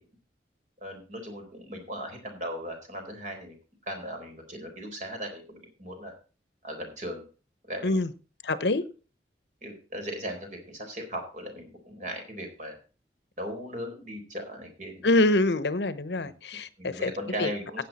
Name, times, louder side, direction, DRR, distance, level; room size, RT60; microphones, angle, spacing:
voice 1, 0.8-3.5 3.9-6.1 6.6-7.2 7.7-8.0 9.6-12.7 13.4-15.0 16.2-16.3 16.8-17.8, equal, 45° right, 4.3 m, -37 dB
voice 2, 8.4-8.8 15.0-17.1 17.4-17.5, left 2 dB, 75° left, 0.9 m, -25 dB
15.5 x 8.2 x 4.2 m
head